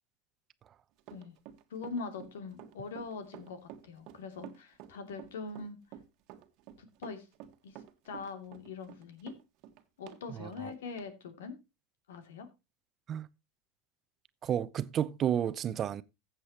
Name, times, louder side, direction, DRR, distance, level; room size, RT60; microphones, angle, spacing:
Run, 1.0-10.2 10.5-10.6 11.0-11.1, right 11 dB, 55° right, 1.5 m, -50 dB
voice 1, 1.7-5.8 6.8-7.3 7.6-9.4 10.0-11.6 12.1-12.5, left 4 dB, 85° left, 2.6 m, -42 dB
voice 2, 14.4-16.0, right 9 dB, 35° right, 0.8 m, -31 dB
15.0 x 7.5 x 2.9 m
supercardioid pair, 110°, 0 cm